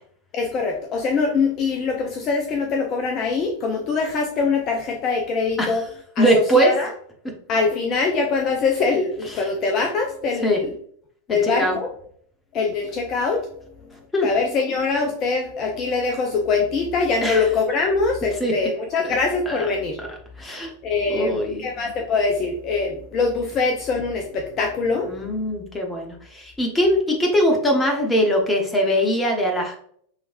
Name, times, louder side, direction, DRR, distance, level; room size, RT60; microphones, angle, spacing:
voice 1, 0.3-5.8 6.2-6.9 7.5-10.7 11.3-11.9 12.5-13.5 14.2-20.0 20.8-25.1, left 4 dB, 35° left, 2 dB, 0.5 m, -23 dB
voice 2, 6.2-6.7 9.3-9.5 10.4-10.6 11.3-11.8 14.1-14.3 17.2-17.4 18.4-18.6 19.0-19.2 19.5-19.7 20.4-20.7 21.1-21.7 25.1-29.8, equal, 10° left, 1 dB, 1.0 m, -21 dB
4.8 x 3.1 x 2.5 m, 0.62 s
figure-of-eight pair, 90°, 0 cm